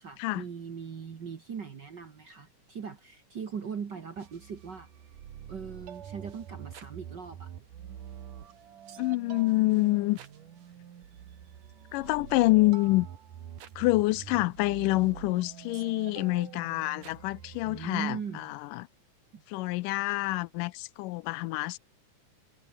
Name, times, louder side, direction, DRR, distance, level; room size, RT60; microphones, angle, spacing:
voice 1, 0.0-4.9 5.5-7.5 17.6-18.5 19.3-19.4, right 6 dB, 45° right, 1.6 m, -40 dB
sound 1, 4.2-17.9, right 9 dB, 75° right, 3.5 m, -46 dB
voice 2, 9.0-10.2 11.9-13.1 13.8-18.9 19.5-21.8, left 20 dB, 85° left, 2.2 m, -27 dB
omnidirectional pair, 3.8 m